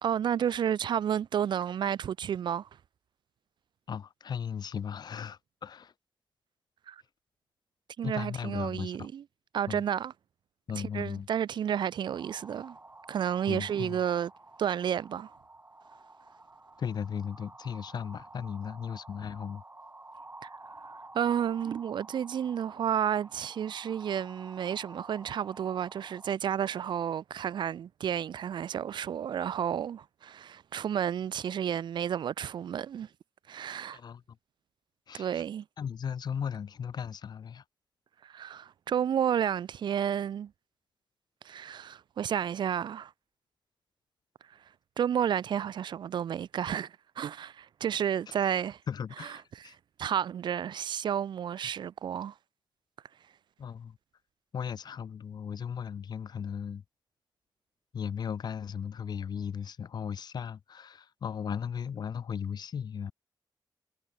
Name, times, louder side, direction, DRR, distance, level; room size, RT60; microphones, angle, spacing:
voice 1, 0.0-2.7 6.9-7.0 8.0-9.2 9.5-10.1 10.9-12.8 13.1-14.3 14.6-15.3 20.4-20.5 21.1-33.1 33.5-34.0 35.1-35.6 38.2-40.5 41.4-43.1 45.0-48.8 49.6-49.7 50.0-52.3, right 9 dB, 85° right, 0.3 m, -31 dB
voice 2, 3.9-5.9 8.0-9.1 9.7-9.8 10.7-11.3 13.5-14.0 16.8-19.6 33.9-34.2 35.1-35.4 35.8-37.6 48.3-48.4 48.9-49.7 53.6-54.0 54.5-56.8 57.9-63.1, left 7 dB, 65° left, 0.4 m, -36 dB
sound 1, 12.0-26.4, right 2 dB, 25° right, 2.8 m, -51 dB
cardioid pair, 70°, 8 cm